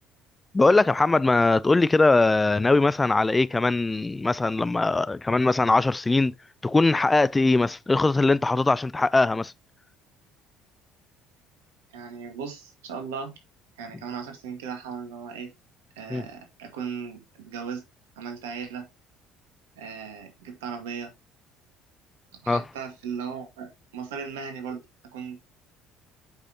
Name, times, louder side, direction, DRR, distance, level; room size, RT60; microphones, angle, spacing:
voice 1, 0.5-6.3 6.6-9.5 16.1-16.2 22.5-22.6, left 3 dB, 20° left, 0.4 m, -21 dB
voice 2, 11.9-13.3 13.8-15.5 16.0-17.8 18.2-18.9 19.8-21.1 22.4-25.4, right 6 dB, 80° right, 2.2 m, -37 dB
8.0 x 6.2 x 2.8 m
hypercardioid pair, 60°, 0 cm